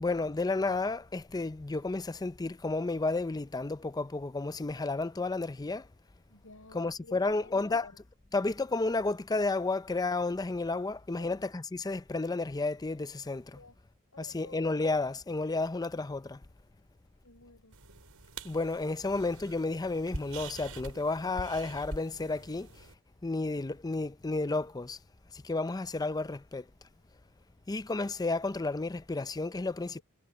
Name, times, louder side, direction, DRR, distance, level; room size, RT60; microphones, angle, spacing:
voice 1, 0.0-5.8 6.7-7.9 8.3-13.4 14.2-16.4 18.5-22.7 23.2-25.0 25.5-26.6 27.7-30.0, left 3 dB, 15° left, 0.5 m, -32 dB
voice 2, 6.3-8.0 11.1-11.4 13.6-13.8 14.1-14.8 17.2-17.8, left 3 dB, 75° left, 4.5 m, -51 dB
sound 1, 17.7-22.9, right 2 dB, 90° right, 5.0 m, -45 dB
head